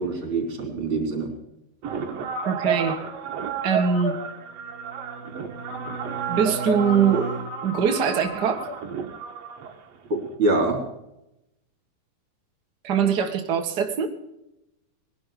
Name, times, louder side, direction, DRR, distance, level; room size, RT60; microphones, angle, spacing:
voice 1, 0.0-1.3 10.1-10.8, right 2 dB, 35° right, 3 dB, 4.5 m, -25 dB
sound 1, 1.8-10.3, right 5 dB, 50° right, 2.5 m, -31 dB
voice 2, 2.4-3.0 3.6-4.2 6.3-7.3 7.6-8.7 12.8-14.1, right 7 dB, 65° right, 4 dB, 1.0 m, -22 dB
Bowed string instrument, 4.2-7.6, right 3 dB, 35° left, 1.3 m, -36 dB
21.0 x 11.5 x 5.1 m, 0.86 s
omnidirectional pair, 4.3 m